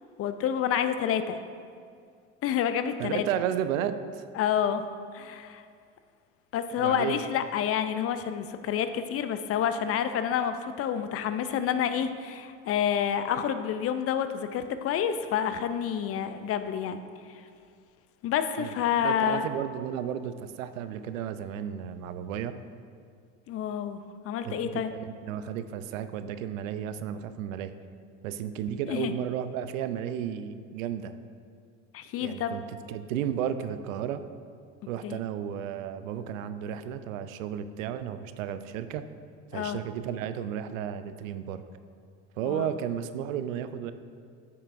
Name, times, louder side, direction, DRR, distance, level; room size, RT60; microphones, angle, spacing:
voice 1, 0.2-1.4 2.4-3.2 4.4-4.8 5.1-5.6 6.5-17.0 18.2-19.5 23.5-24.0 24.2-24.9 28.9-29.1 31.9-32.5 35.0-35.2 39.5-39.8 42.4-42.7, left 9 dB, 40° left, 10 dB, 0.4 m, -28 dB
voice 2, 3.0-4.2 6.8-7.2 18.6-18.7 19.0-22.5 24.4-27.7 28.2-31.1 32.2-34.2 34.9-39.0 39.5-41.6 42.4-43.9, right 9 dB, 80° right, 11 dB, 0.5 m, -33 dB
9.3 x 5.6 x 2.5 m, 2.2 s
hypercardioid pair, 75°, 39 cm